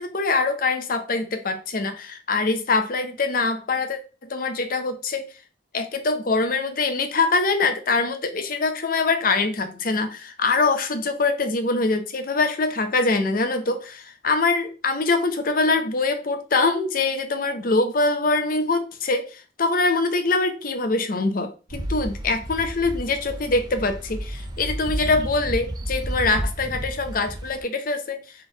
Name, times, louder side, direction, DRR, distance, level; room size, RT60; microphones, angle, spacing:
voice 1, 0.0-5.3 5.7-28.2, left 3 dB, 50° left, 0.7 m, -24 dB
sound 1, 21.7-27.6, right 1 dB, 25° right, 0.5 m, -31 dB
3.9 x 3.3 x 3.9 m
head